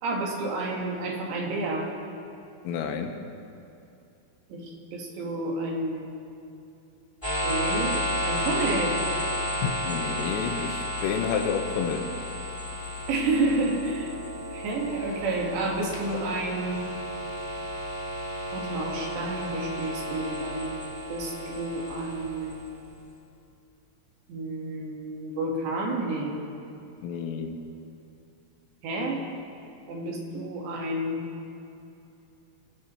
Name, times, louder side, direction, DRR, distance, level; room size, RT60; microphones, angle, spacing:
voice 1, 0.0-1.9 4.5-6.1 7.4-8.0 8.2-9.0 13.1-14.1 14.5-16.8 18.5-20.8 21.1-22.6 24.3-26.3 28.8-29.2 29.9-31.3, right 2 dB, 65° right, -1 dB, 3.6 m, -30 dB
voice 2, 2.7-3.2 9.6-12.1 27.0-27.6, left 6 dB, 90° left, 5 dB, 3.7 m, -30 dB
sound 1, 7.2-22.9, equal, 10° left, 2.3 m, -32 dB
24.5 x 17.5 x 3.1 m, 2.8 s
omnidirectional pair, 5.8 m